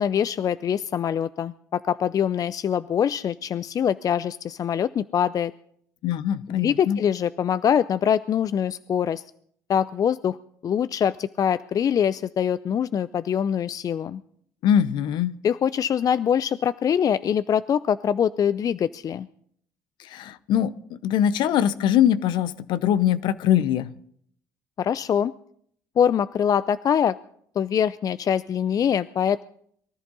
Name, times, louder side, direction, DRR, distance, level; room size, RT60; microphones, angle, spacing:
voice 1, 0.0-5.5 6.5-9.2 9.7-10.4 10.6-14.2 15.4-19.3 24.8-25.3 26.0-27.2 27.6-29.4, left 8 dB, 45° left, 16 dB, 0.5 m, -24 dB
voice 2, 6.0-7.0 14.6-15.3 20.0-23.9, left 10 dB, 65° left, 15 dB, 0.8 m, -22 dB
23.0 x 14.0 x 4.1 m, 0.66 s
hypercardioid pair, 60°, 8 cm